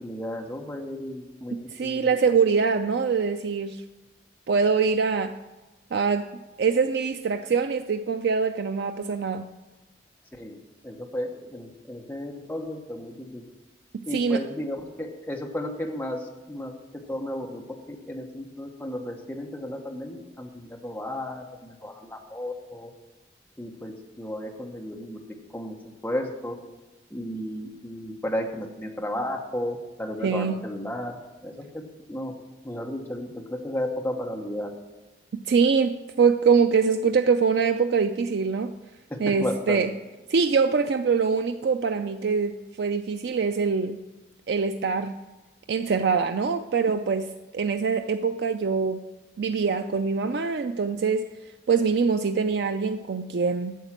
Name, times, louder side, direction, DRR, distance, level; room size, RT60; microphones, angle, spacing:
voice 1, 0.0-1.5 1.8-2.4 10.4-13.4 14.1-16.7 17.1-22.9 23.6-25.8 26.0-26.5 27.1-31.2 31.4-31.8 32.1-32.3 32.6-34.7 39.1-39.9, left 1 dB, 10° left, 1 dB, 1.1 m, -33 dB
voice 2, 1.5-3.8 4.5-5.4 5.9-6.3 6.6-9.5 14.1-14.4 30.2-30.5 35.5-38.7 39.2-39.9 40.3-44.0 44.5-45.2 45.7-49.0 49.4-51.3 51.7-53.8, right 5 dB, 60° right, 8 dB, 0.4 m, -24 dB
9.3 x 7.2 x 7.3 m, 1.1 s
head